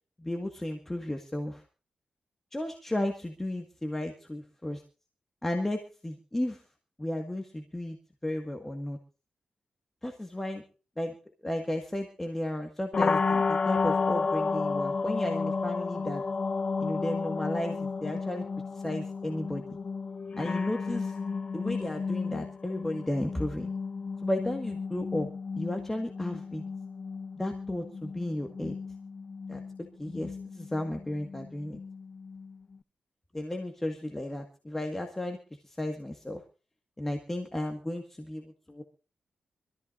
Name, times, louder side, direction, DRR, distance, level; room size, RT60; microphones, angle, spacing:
voice 1, 0.2-1.6 2.5-4.8 5.4-6.6 7.0-8.0 8.2-9.0 10.0-10.6 11.0-11.1 11.4-16.2 16.8-18.5 18.7-19.8 20.3-21.1 21.5-23.7 24.2-25.3 25.5-26.6 27.3-28.8 29.5-29.6 30.0-31.8 33.3-35.4 35.6-36.4 37.0-38.8, left 1 dB, 15° left, 4 dB, 1.7 m, -34 dB
sound 1, 12.9-32.8, left 4 dB, 40° left, 0.6 m, -33 dB
25.5 x 14.0 x 2.5 m, 0.35 s
wide cardioid pair, 130°, 3 cm